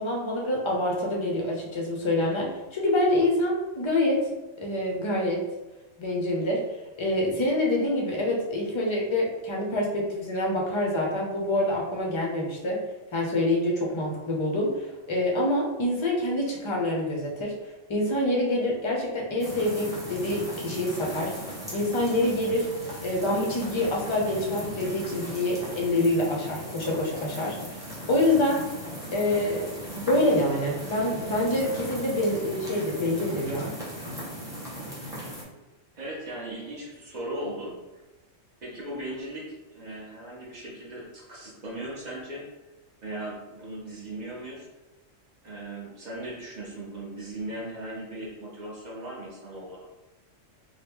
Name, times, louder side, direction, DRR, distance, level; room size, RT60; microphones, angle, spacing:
voice 1, 0.0-4.3 4.6-5.5 6.0-6.7 7.0-12.8 13.1-17.6 17.9-21.3 21.7-22.7 23.0-28.7 29.1-29.7 29.9-33.7, left 1 dB, 35° left, -1 dB, 0.4 m, -26 dB
sound 1, 19.4-35.4, equal, 5° right, 0.8 m, -38 dB
voice 2, 36.0-37.8 38.6-42.5 43.0-44.7 45.4-49.9, right 1 dB, 40° right, -4 dB, 0.8 m, -38 dB
3.0 x 2.2 x 3.4 m, 1.0 s
omnidirectional pair, 1.3 m